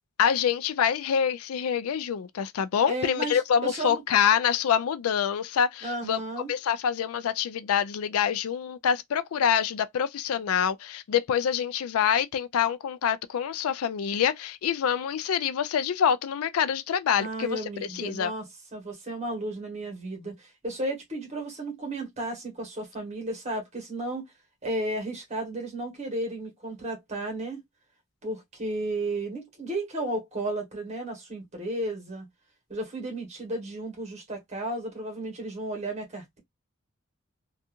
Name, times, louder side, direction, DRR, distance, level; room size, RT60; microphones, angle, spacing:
voice 1, 0.2-6.2 6.5-18.3, left 8 dB, 90° left, 0.4 m, -26 dB
voice 2, 2.9-4.0 5.8-6.5 17.2-18.4 18.7-24.2 24.6-27.6 28.2-32.2 32.7-36.4, right 1 dB, 30° right, 1.3 m, -33 dB
2.7 x 2.4 x 2.3 m
head